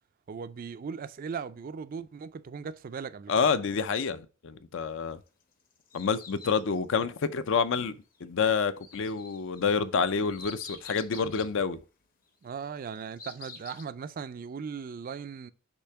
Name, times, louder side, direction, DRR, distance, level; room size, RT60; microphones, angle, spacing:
voice 1, 0.3-3.5 12.4-15.5, right 6 dB, 40° right, 0.3 m, -38 dB
voice 2, 3.3-5.2 5.9-7.9 8.2-11.8, left 5 dB, 60° left, 0.5 m, -28 dB
sound 1, 5.3-6.9 8.8-11.5 12.6-13.9, left 5 dB, 40° left, 0.9 m, -47 dB
6.7 x 2.8 x 5.6 m
head